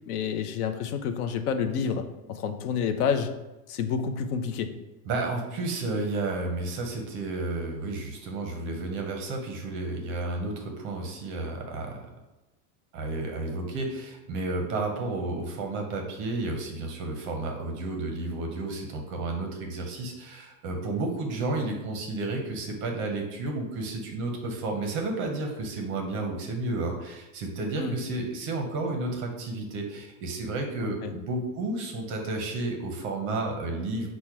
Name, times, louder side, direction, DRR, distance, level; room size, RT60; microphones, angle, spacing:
voice 1, 0.1-3.3 3.7-4.7 27.8-27.9 31.0-31.1, left 6 dB, 80° left, 8 dB, 0.6 m, -29 dB
voice 2, 5.1-12.0 12.9-34.1, right 2 dB, 30° right, 3 dB, 0.5 m, -32 dB
4.3 x 2.1 x 4.6 m, 1.0 s
supercardioid pair, 145°, 44 cm